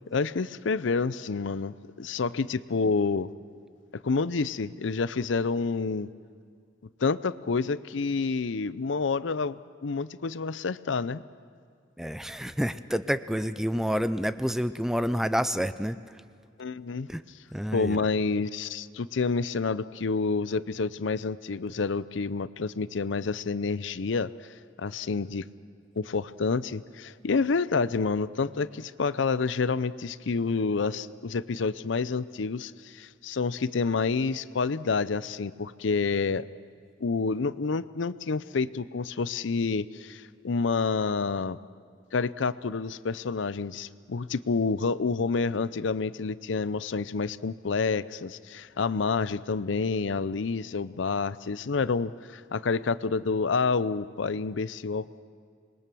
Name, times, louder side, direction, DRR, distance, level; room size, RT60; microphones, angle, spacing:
voice 1, 0.1-3.3 3.9-6.1 7.0-11.2 16.6-17.1 17.7-24.3 24.8-25.5 26.0-36.5 37.0-41.6 42.1-55.2, left 4 dB, 75° left, 16 dB, 0.6 m, -28 dB
voice 2, 12.0-16.0 17.1-17.2 17.5-18.0, equal, ahead, 12 dB, 0.5 m, -28 dB
26.5 x 21.5 x 6.2 m, 2.2 s
head